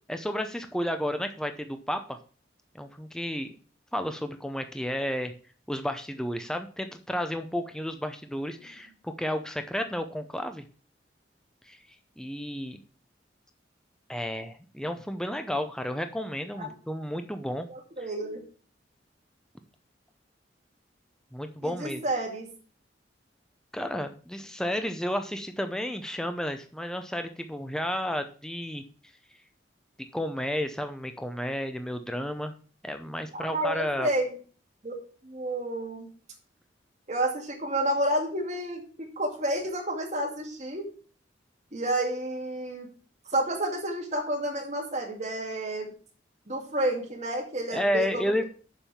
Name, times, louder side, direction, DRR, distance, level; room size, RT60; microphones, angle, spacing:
voice 1, 0.1-2.2 2.7-3.5 3.9-5.3 5.7-10.6 11.7-11.8 12.2-12.8 14.1-17.7 21.3-22.0 23.7-28.8 30.1-32.5 32.8-34.1 47.7-48.4, equal, 5° left, 7 dB, 0.6 m, -32 dB
voice 2, 17.7-18.4 21.6-22.5 33.3-34.3 34.8-34.9 35.2-36.1 37.1-40.9 41.7-42.9 43.3-45.9 46.5-48.4, right 1 dB, 40° right, 1 dB, 2.4 m, -30 dB
7.1 x 5.5 x 7.0 m, 0.40 s
head